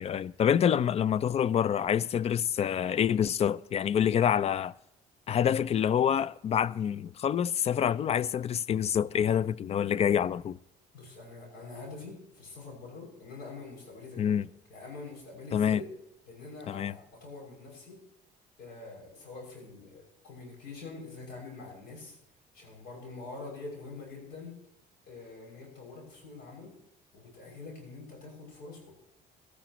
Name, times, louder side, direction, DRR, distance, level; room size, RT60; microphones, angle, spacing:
voice 1, 0.0-4.7 5.3-10.6 14.2-14.5 15.5-15.8 16.7-16.9, left 9 dB, 40° left, 0.4 m, -27 dB
voice 2, 10.9-15.8 16.3-18.0 18.6-22.2 22.5-24.5 25.1-26.7 27.1-28.9, left 3 dB, 85° left, 6.3 m, -45 dB
17.5 x 13.0 x 3.0 m
cardioid pair, 110°, 17 cm